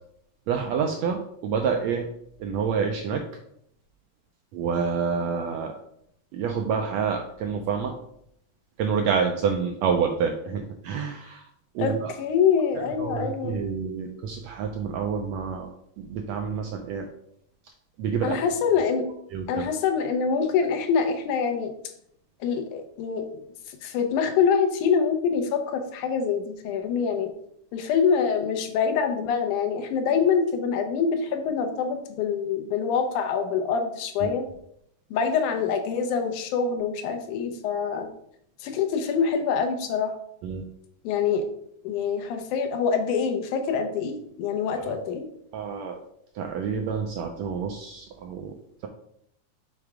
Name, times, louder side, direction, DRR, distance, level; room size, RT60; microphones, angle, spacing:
voice 1, 0.5-2.1 2.4-3.2 4.5-5.7 6.3-7.9 8.8-11.5 11.7-12.1 13.0-15.7 16.0-17.1 18.0-18.4 19.3-19.6 34.2-34.3 40.4-40.6 44.8-45.0 45.5-46.0 46.3-48.9, right 6 dB, 80° right, 3 dB, 1.6 m, -28 dB
voice 2, 11.8-13.6 18.2-19.1 19.5-21.7 22.4-23.2 23.7-27.3 27.7-34.4 35.1-38.1 38.6-40.2 41.0-41.4 41.8-45.3, left 6 dB, 80° left, 6 dB, 2.3 m, -25 dB
6.7 x 3.5 x 4.8 m, 0.72 s
omnidirectional pair, 3.6 m